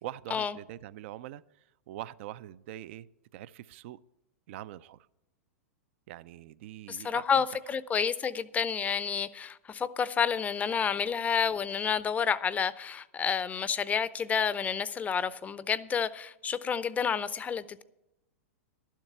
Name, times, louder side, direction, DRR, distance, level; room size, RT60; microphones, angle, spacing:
voice 1, 0.0-1.4 1.9-3.1 3.3-4.0 4.5-5.1 6.1-7.4, right 13 dB, 55° right, 0.4 m, -43 dB
voice 2, 6.9-17.8, left 7 dB, 20° left, 0.6 m, -30 dB
12.0 x 7.4 x 6.7 m
hypercardioid pair, 110°, 8 cm